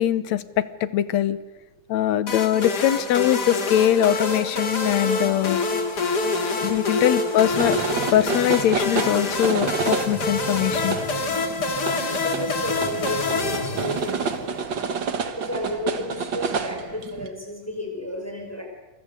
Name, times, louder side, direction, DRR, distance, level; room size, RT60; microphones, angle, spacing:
voice 1, 0.0-1.4 1.9-5.6 6.6-7.8 8.1-11.0, left 11 dB, 70° left, 15 dB, 2.1 m, -22 dB
sound 1, 2.3-14.5, left 3 dB, 35° left, 2.6 m, -26 dB
sound 2, 7.5-17.3, right 5 dB, 45° right, 1.8 m, -29 dB
voice 2, 12.0-14.6 15.2-18.6, left 1 dB, 5° left, 2 dB, 5.0 m, -32 dB
28.5 x 23.0 x 8.0 m, 1.1 s
omnidirectional pair, 3.5 m